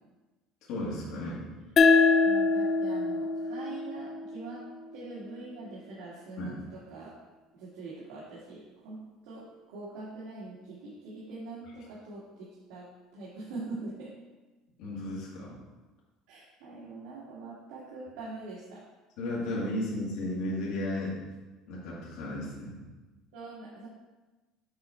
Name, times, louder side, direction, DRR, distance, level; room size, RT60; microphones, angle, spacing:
voice 1, 0.7-1.4 6.4-6.5 14.8-15.5 19.2-21.2 21.7-22.8, left 1 dB, 60° left, -6 dB, 2.0 m, -34 dB
sound 1, 1.8-5.0, left 4 dB, 25° left, 0.4 m, -24 dB
voice 2, 2.2-4.6 4.9-7.1 7.5-12.9 13.1-14.1 16.3-18.8 23.3-23.9, right 3 dB, 85° right, -8 dB, 1.9 m, -43 dB
7.5 x 4.3 x 4.4 m, 1.2 s
cardioid pair, 170°, 0 cm